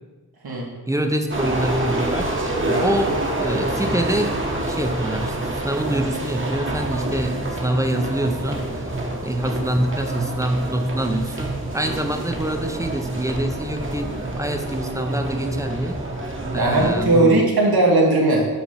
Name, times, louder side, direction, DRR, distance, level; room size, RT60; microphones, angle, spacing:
voice 1, 0.9-2.5 2.8-4.4 4.7-5.4 5.6-8.9 9.2-16.0 16.5-17.4, right 1 dB, 10° right, 5 dB, 0.6 m, -25 dB
sound 1, 1.3-17.1, right 1 dB, 35° right, 1.1 m, -27 dB
voice 2, 16.5-18.5, right 2 dB, 80° right, -1 dB, 1.5 m, -18 dB
5.8 x 4.2 x 5.7 m, 1.3 s
wide cardioid pair, 85°, 37 cm